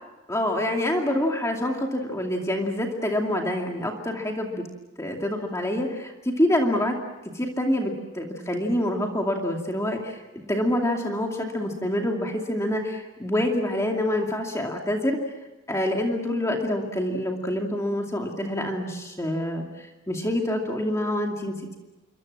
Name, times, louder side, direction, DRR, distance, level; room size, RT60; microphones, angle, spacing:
voice 1, 0.3-4.6 5.0-7.0 7.2-15.2 15.7-21.8, left 1 dB, 15° left, 1 dB, 2.4 m, -26 dB
28.0 x 24.0 x 7.5 m, 1.1 s
head